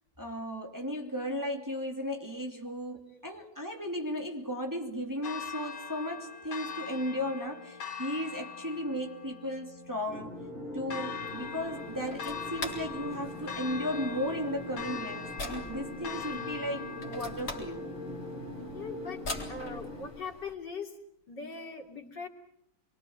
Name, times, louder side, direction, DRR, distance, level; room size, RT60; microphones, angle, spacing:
voice 1, 0.2-10.3 10.7-17.9, equal, 10° right, 2 dB, 2.8 m, -35 dB
Church bell, 5.2-19.2, left 7 dB, 75° left, 2.3 m, -42 dB
sound 1, 10.1-20.1, left 1 dB, 80° right, 6.6 m, -42 dB
sound 2, 11.2-20.5, left 2 dB, 40° left, 4.3 m, -44 dB
voice 2, 18.7-19.2 19.5-21.0 21.3-22.3, left 5 dB, 60° left, 3 dB, 3.5 m, -40 dB
27.5 x 23.5 x 8.0 m, 0.75 s
omnidirectional pair, 2.2 m